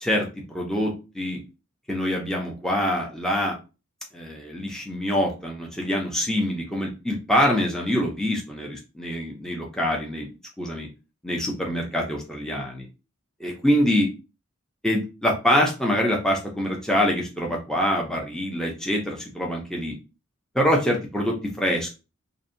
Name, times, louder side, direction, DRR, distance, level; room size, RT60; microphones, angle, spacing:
voice 1, 0.0-1.4 1.9-3.6 4.1-10.3 10.6-10.9 11.2-12.8 13.4-14.1 14.8-19.9 20.5-21.9, equal, 5° left, -1 dB, 0.4 m, -25 dB
2.6 x 2.0 x 2.5 m, 0.30 s
head